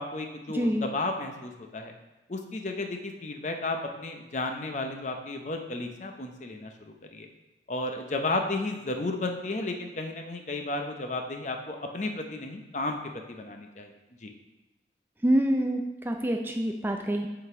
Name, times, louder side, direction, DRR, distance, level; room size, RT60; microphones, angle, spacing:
voice 1, 0.0-1.9 2.3-7.3 7.7-13.0 13.3-13.9 14.2-14.3, left 2 dB, 40° left, 4 dB, 0.6 m, -33 dB
voice 2, 0.5-0.9 15.2-17.3, right 1 dB, 10° right, 3 dB, 0.4 m, -26 dB
8.0 x 3.9 x 4.8 m, 1.0 s
head